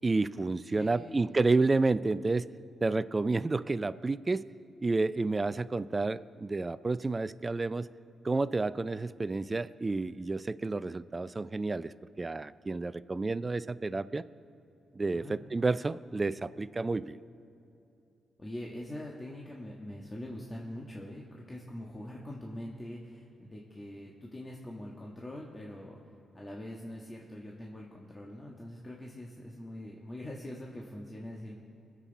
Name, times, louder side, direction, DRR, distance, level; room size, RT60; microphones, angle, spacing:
voice 1, 0.0-2.5 2.8-4.4 4.8-7.9 8.2-14.3 14.9-17.2, right 3 dB, 30° right, 15 dB, 0.4 m, -30 dB
voice 2, 0.8-1.3 15.1-15.4 18.4-26.0 26.3-31.6, left 1 dB, 25° left, -2 dB, 1.6 m, -43 dB
22.5 x 7.6 x 4.1 m, 2.8 s
supercardioid pair, 55°, 0 cm